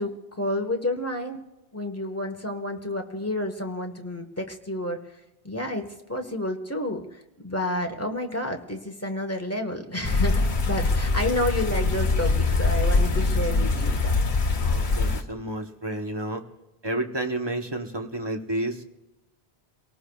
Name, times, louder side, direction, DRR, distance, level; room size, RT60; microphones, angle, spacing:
voice 1, 0.0-1.4 1.7-5.0 5.4-7.2 7.4-14.2, left 1 dB, 15° left, 4 dB, 1.2 m, -30 dB
sound 1, 10.0-15.2, left 3 dB, 50° left, 1.0 m, -23 dB
voice 2, 14.5-16.4 16.8-18.8, right 1 dB, 25° right, 4 dB, 1.0 m, -31 dB
29.5 x 18.5 x 2.3 m, 0.95 s
omnidirectional pair, 1.1 m